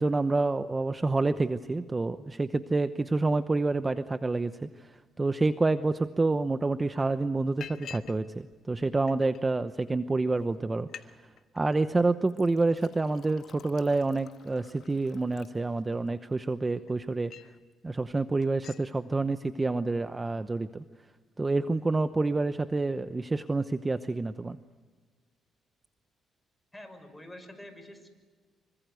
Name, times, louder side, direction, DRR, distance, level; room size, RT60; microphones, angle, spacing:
voice 1, 0.0-11.2 11.5-17.3 17.8-20.8 21.4-24.6, right 3 dB, 20° right, 11 dB, 0.8 m, -28 dB
Liquid, 6.4-6.5 6.9-7.1 7.6-8.2 8.5-9.4 10.1-10.2 10.5-10.6 10.8-11.1 11.4-11.8 12.3-16.1 16.6-17.6 18.0-18.2 18.4-18.9, left 9 dB, 65° left, 1.4 m, -49 dB
voice 2, 26.7-28.1, left 1 dB, 5° left, 6 dB, 6.0 m, -47 dB
26.0 x 24.5 x 8.2 m, 1.4 s
cardioid pair, 90°, 0 cm